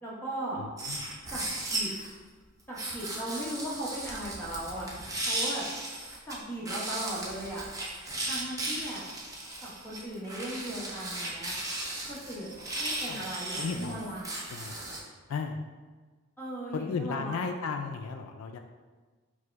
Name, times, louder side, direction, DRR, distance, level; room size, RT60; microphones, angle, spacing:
voice 1, 0.0-0.6 1.3-1.4 1.7-1.9 2.7-4.9 5.3-5.7 6.3-7.7 8.2-9.0 9.6-11.5 12.1-14.4 16.4-17.4, right 1 dB, 10° left, -7 dB, 1.0 m, -37 dB
voice 2, 0.6-1.0 13.1-13.3 13.6-14.1 14.5-14.9 15.3-15.6 16.7-18.6, left 5 dB, 75° left, 5 dB, 0.3 m, -35 dB
sound 1, 0.8-2.1 2.8-6.3 6.6-15.0, right 2 dB, 15° right, 0.6 m, -36 dB
4.7 x 2.1 x 4.5 m, 1.4 s
head